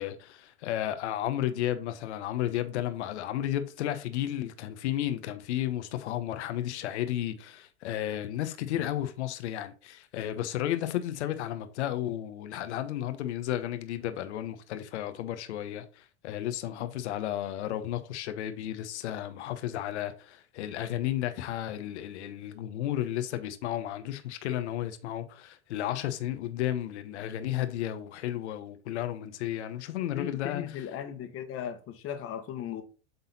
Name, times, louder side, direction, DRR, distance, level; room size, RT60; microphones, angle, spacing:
voice 1, 0.0-30.9, left 12 dB, 75° left, 1.0 m, -33 dB
voice 2, 30.1-32.8, left 9 dB, 40° left, 1.4 m, -37 dB
8.0 x 4.0 x 4.1 m
hypercardioid pair, 100°, 35 cm